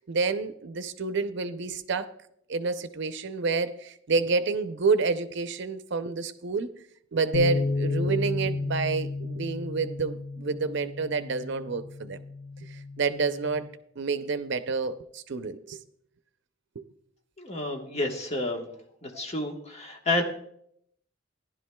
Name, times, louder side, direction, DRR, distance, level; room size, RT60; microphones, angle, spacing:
voice 1, 0.0-2.1 2.5-6.7 7.1-12.2 12.6-13.7 14.0-15.8 16.8-16.9, right 4 dB, 65° right, 11 dB, 0.6 m, -29 dB
sound 1, 7.3-13.6, left 3 dB, 80° left, 1.0 m, -32 dB
voice 2, 17.4-18.6 19.0-20.2, left 2 dB, 35° left, 2 dB, 1.3 m, -30 dB
15.5 x 11.0 x 2.3 m, 0.70 s
head